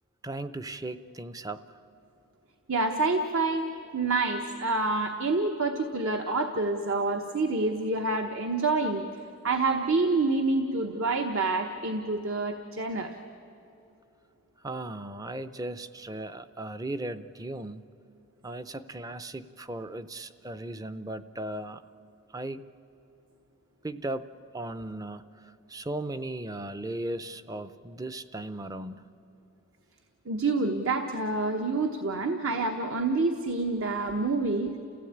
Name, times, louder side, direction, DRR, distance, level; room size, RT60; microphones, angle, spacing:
voice 1, 0.2-1.8 14.6-17.8 18.4-21.8 22.3-22.7 23.8-24.3 24.5-29.1, right 1 dB, 15° right, 13 dB, 0.5 m, -37 dB
voice 2, 2.7-3.7 3.9-9.0 9.4-13.2 30.3-34.7, right 3 dB, 65° right, 5 dB, 1.1 m, -27 dB
29.5 x 16.0 x 8.7 m, 2.9 s
head